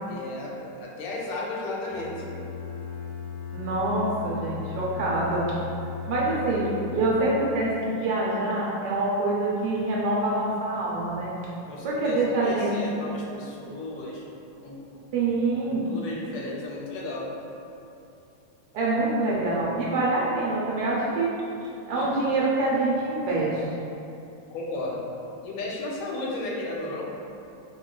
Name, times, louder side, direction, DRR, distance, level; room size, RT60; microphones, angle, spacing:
voice 1, 0.1-2.3 6.3-6.7 11.7-14.3 14.6-15.0 15.7-17.3 24.5-25.1 25.4-27.1, left 2 dB, 90° left, -3 dB, 1.3 m, -34 dB
Bowed string instrument, 1.9-7.8, left 7 dB, 70° left, 0.9 m, -37 dB
voice 2, 3.5-5.4 6.1-11.3 11.8-13.0 15.1-15.9 18.7-21.3 21.6-23.6, right 2 dB, 70° right, -5 dB, 1.0 m, -25 dB
4.2 x 2.3 x 2.2 m, 2.7 s
omnidirectional pair, 2.0 m